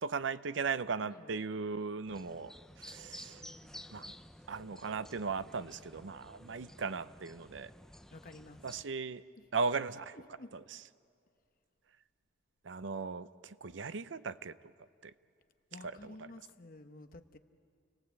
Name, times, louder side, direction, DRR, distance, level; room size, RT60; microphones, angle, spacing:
voice 1, 0.0-3.5 3.9-4.1 4.5-7.7 8.6-9.2 9.5-10.2 10.5-10.8 12.6-15.1 15.8-16.3, right 5 dB, 80° right, 15 dB, 0.6 m, -38 dB
sound 1, 2.1-8.8, left 1 dB, 5° left, 0.6 m, -53 dB
voice 2, 8.1-8.6 9.4-9.5 10.1-10.7 15.7-17.4, left 2 dB, 50° left, 8 dB, 1.0 m, -52 dB
29.5 x 18.5 x 8.1 m, 2.3 s
head